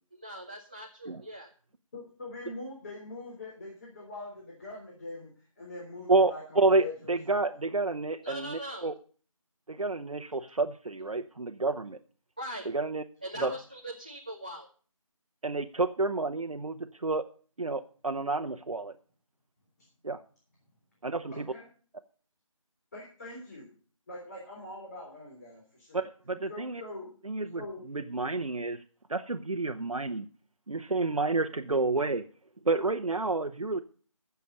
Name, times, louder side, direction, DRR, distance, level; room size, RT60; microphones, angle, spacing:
voice 1, 0.1-1.5 8.2-8.9 12.4-12.7 13.2-14.7, right 1 dB, 15° right, 1 dB, 0.5 m, -40 dB
voice 2, 1.9-7.4 13.3-13.5 21.3-21.7 22.9-23.7 24.1-26.0 26.5-27.1 27.5-27.8, left 2 dB, 30° left, -3 dB, 3.7 m, -43 dB
voice 3, 6.1-8.9 9.7-12.0 12.7-13.0 13.4-13.5 15.4-17.3 17.6-18.9 20.0-20.2 21.0-21.5 25.9-26.8 27.2-28.8 29.1-30.3 30.7-32.2 32.6-33.8, right 3 dB, 80° right, 5 dB, 0.9 m, -29 dB
13.5 x 7.0 x 5.4 m, 0.42 s
figure-of-eight pair, 165°, 18 cm